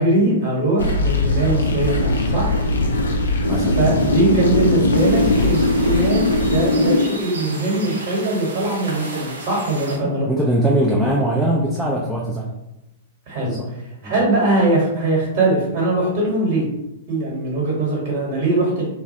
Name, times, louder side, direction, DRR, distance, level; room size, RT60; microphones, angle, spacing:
voice 1, 0.0-2.5 3.8-10.3 13.3-13.6 14.0-16.6 17.1-18.9, right 2 dB, 45° right, -4 dB, 1.0 m, -21 dB
sound 1, 0.8-7.0, left 2 dB, 80° left, 0.4 m, -19 dB
voice 2, 3.5-4.0 10.0-12.5 13.4-13.7 14.0-14.1, right 1 dB, 5° right, -4 dB, 0.4 m, -21 dB
sound 2, 4.9-10.0, right 2 dB, 80° right, 0.5 m, -34 dB
2.2 x 2.1 x 2.7 m, 0.92 s
hypercardioid pair, 110°, 0 cm